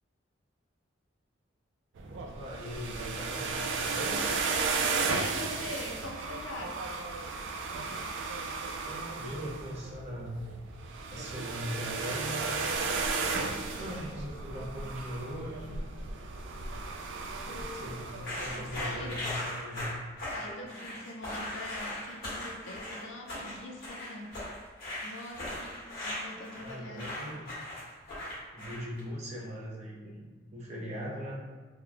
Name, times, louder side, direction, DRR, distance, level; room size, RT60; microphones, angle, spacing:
voice 1, 2.0-4.2 8.8-10.4 11.1-12.4 13.8-15.8 17.6-19.9 26.6-27.5 28.5-31.4, equal, 35° right, -4 dB, 0.6 m, -40 dB
sound 1, 2.0-19.2, right 4 dB, 75° right, 0.3 m, -35 dB
voice 2, 4.1-6.8 13.6-14.1 17.4-18.0 18.5-19.2 20.2-24.4 25.0-27.1, left 1 dB, 80° left, 1 dB, 0.5 m, -43 dB
sound 2, 18.2-29.0, left 1 dB, 50° left, 1.3 m, -38 dB
3.0 x 2.1 x 3.8 m, 1.4 s
head